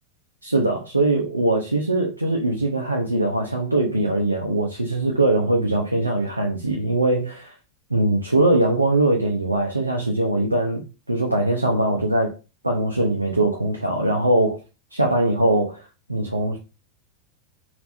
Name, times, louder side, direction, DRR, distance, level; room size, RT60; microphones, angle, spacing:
voice 1, 0.4-7.5 7.9-12.3 12.6-14.6 14.9-16.6, right 2 dB, 85° right, 0.6 m, -21 dB
3.3 x 2.9 x 2.6 m
figure-of-eight pair, 90°, 0 cm